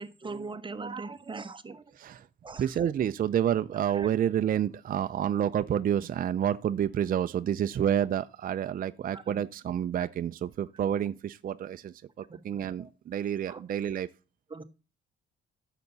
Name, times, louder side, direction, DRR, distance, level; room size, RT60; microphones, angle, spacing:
voice 1, 0.0-1.8 2.4-2.6 3.9-4.1 9.1-9.4 10.0-10.1 12.3-12.4 12.8-12.9 13.5-13.6 14.5-14.6, right 4 dB, 25° right, 1.1 m, -40 dB
voice 2, 1.9-2.3 2.5-14.1, right 9 dB, 45° right, 0.5 m, -29 dB
10.0 x 6.8 x 4.0 m
cardioid pair, 90°, 20 cm